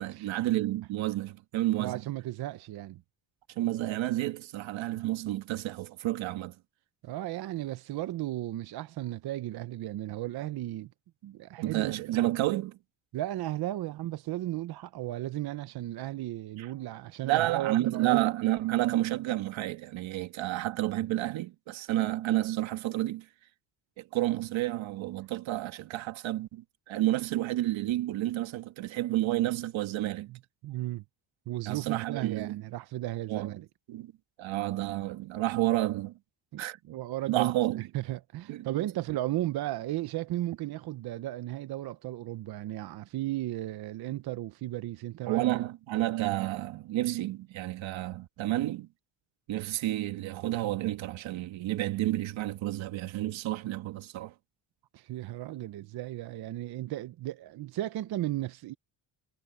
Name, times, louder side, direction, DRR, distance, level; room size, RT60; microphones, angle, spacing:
voice 1, 0.0-2.0 3.6-6.6 11.6-12.8 16.6-16.7 17.2-23.3 24.0-30.3 31.7-32.6 33.3-33.5 33.9-34.1 34.4-36.2 36.6-36.8 37.3-37.8 38.5-38.9 45.3-48.9 49.5-54.3, right 15 dB, 85° right, 1.9 m, -30 dB
voice 2, 1.8-3.0 7.0-10.9 11.2-11.9 13.1-18.3 30.3-30.4 30.6-31.0 31.5-33.7 36.5-37.5 37.9-45.5 54.9-58.7, right 15 dB, 55° right, 0.7 m, -35 dB
cardioid pair, 175°, 45 cm